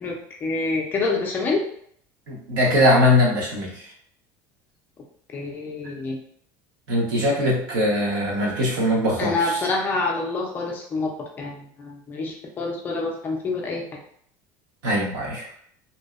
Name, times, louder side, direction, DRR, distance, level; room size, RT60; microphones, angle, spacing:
voice 1, 0.4-1.6 5.3-6.2 9.2-11.1 11.4-13.8, left 3 dB, 20° left, 0 dB, 0.3 m, -26 dB
voice 2, 2.3-3.8 6.9-9.6 14.8-15.5, left 1 dB, 90° right, -3 dB, 1.0 m, -21 dB
2.6 x 2.0 x 2.3 m, 0.64 s
cardioid pair, 170°, 10 cm